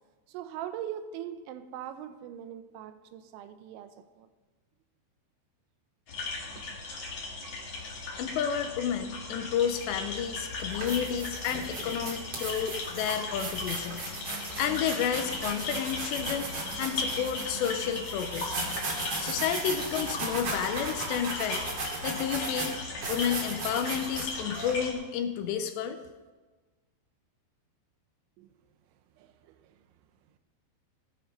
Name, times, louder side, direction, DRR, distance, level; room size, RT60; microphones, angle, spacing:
voice 1, 0.3-4.3 6.6-6.8 28.4-28.5 29.2-29.9, right 10 dB, 85° right, 3.0 m, -41 dB
sound 1, 6.1-24.9, left 3 dB, 45° left, 2.5 m, -38 dB
voice 2, 8.2-14.0 14.6-16.5 16.8-18.6 19.2-21.6 22.0-22.8 23.1-26.0, left 8 dB, 80° left, 2.7 m, -31 dB
sound 2, 9.9-10.1 10.6-24.7, right 3 dB, 40° right, 2.7 m, -36 dB
17.0 x 8.8 x 5.4 m
omnidirectional pair, 5.4 m